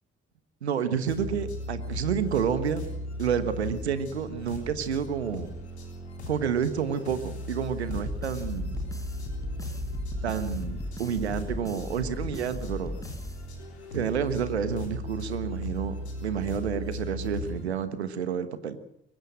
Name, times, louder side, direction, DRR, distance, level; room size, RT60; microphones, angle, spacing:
voice 1, 0.6-2.8 3.2-5.5 6.3-8.7 10.2-12.9 13.9-15.9 16.2-18.8, right 7 dB, 80° right, 12 dB, 1.4 m, -29 dB
sound 1, 1.1-17.6, left 1 dB, 85° left, 3.4 m, -37 dB
sound 2, 7.9-14.0, left 1 dB, 10° left, 5.3 m, -37 dB
23.0 x 20.0 x 6.3 m, 0.75 s
figure-of-eight pair, 40°, 32 cm